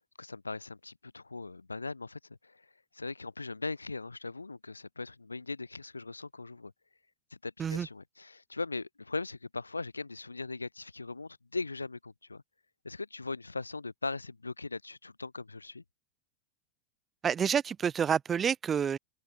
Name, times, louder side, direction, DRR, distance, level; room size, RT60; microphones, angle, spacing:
voice 1, 0.2-6.7 7.3-12.4 12.8-15.8, left 3 dB, 80° left, 4.9 m, -39 dB
voice 2, 17.2-19.0, right 7 dB, 20° right, 0.8 m, -28 dB
figure-of-eight pair, 90°, 0 cm